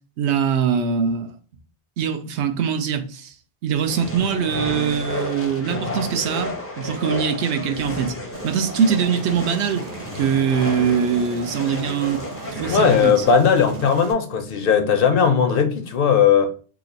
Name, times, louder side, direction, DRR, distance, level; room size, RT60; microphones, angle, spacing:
voice 1, 0.2-1.3 2.0-3.3 3.6-8.1 8.4-9.9 10.1-12.2 12.5-13.3, right 7 dB, 90° right, 0.9 m, -22 dB
sound 1, 3.9-13.3, left 1 dB, 20° left, 0.4 m, -31 dB
Aircraft, 8.3-14.1, right 4 dB, 50° right, 0.5 m, -38 dB
voice 2, 12.7-16.5, left 7 dB, 65° left, 0.7 m, -17 dB
3.0 x 2.5 x 3.9 m
omnidirectional pair, 1.1 m